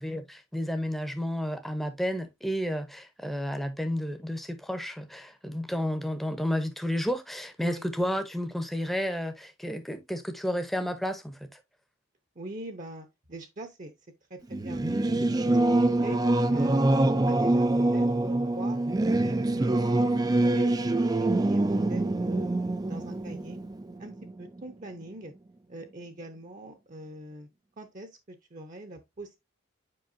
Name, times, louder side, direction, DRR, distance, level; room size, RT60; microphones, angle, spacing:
voice 1, 0.0-11.6, equal, ahead, 0.8 m, -31 dB
voice 2, 12.3-13.9 14.3-16.2 16.5-18.8 19.1-19.8 20.2-21.6 21.9-22.5 22.8-23.6 24.0-24.1 24.4-25.3 25.7-27.5 27.8-29.4, right 2 dB, 40° right, 0.8 m, -43 dB
Singing / Musical instrument, 14.5-24.6, right 2 dB, 20° right, 0.3 m, -25 dB
7.7 x 5.2 x 2.6 m
head